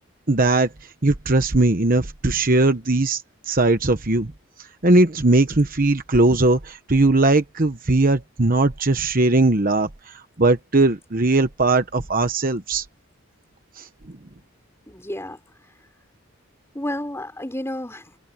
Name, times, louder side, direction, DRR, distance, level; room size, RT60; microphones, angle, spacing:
voice 1, 0.3-0.7 1.0-4.3 4.8-12.8 13.8-13.9, right 2 dB, 40° right, 1.1 m, -19 dB
voice 2, 14.9-15.4 16.7-18.2, left 1 dB, 10° left, 5.5 m, -31 dB
head